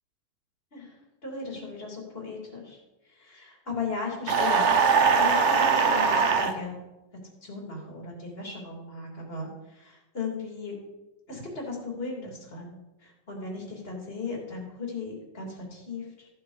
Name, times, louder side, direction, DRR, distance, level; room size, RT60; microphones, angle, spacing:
voice 1, 0.7-2.8 3.1-4.9 5.1-6.8 7.4-10.8 11.3-16.3, left 4 dB, 35° left, -1 dB, 2.9 m, -37 dB
sound 1, 4.3-6.5, right 5 dB, 50° right, 1.1 m, -21 dB
14.0 x 7.1 x 4.9 m, 1.0 s
omnidirectional pair, 1.9 m